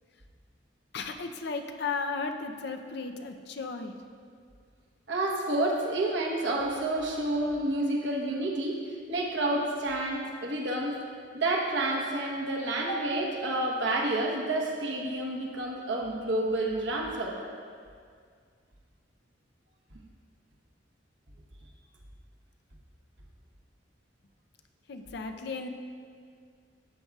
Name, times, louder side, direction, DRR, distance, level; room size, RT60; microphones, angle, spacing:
voice 1, 0.9-3.9 24.9-25.7, left 4 dB, 65° left, 6 dB, 0.6 m, -35 dB
voice 2, 5.1-8.8 9.1-11.0 11.3-17.3, right 1 dB, 70° right, -1 dB, 1.2 m, -29 dB
12.5 x 8.0 x 2.4 m, 2.1 s
head